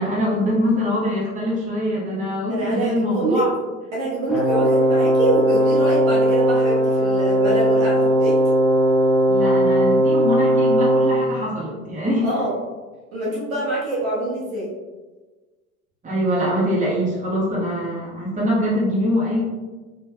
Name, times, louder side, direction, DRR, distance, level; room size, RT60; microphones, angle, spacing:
voice 1, 0.0-3.5 9.3-12.3 16.0-19.4, equal, 20° right, -6 dB, 1.3 m, -23 dB
voice 2, 2.5-3.5 3.9-8.4 12.2-12.5 13.1-14.7, right 2 dB, 70° right, -5 dB, 1.2 m, -25 dB
Brass instrument, 4.3-11.2, equal, ahead, 1.4 m, -18 dB
4.3 x 3.2 x 2.2 m, 1.3 s
figure-of-eight pair, 70°, 42 cm